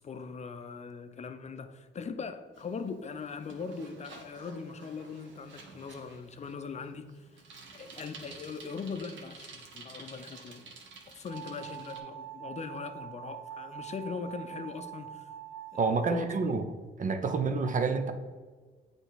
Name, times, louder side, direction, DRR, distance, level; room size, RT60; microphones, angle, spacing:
voice 1, 0.0-10.7 11.1-15.3 15.7-16.6, left 5 dB, 35° left, 0.6 m, -40 dB
Bicycle, 2.5-12.0, right 4 dB, 70° right, 1.2 m, -51 dB
sound 1, 11.3-16.2, right 11 dB, 90° right, 0.8 m, -44 dB
voice 2, 15.8-16.6 17.0-18.1, right 4 dB, 40° right, 0.7 m, -28 dB
8.2 x 3.4 x 4.0 m
cardioid pair, 90°, 20 cm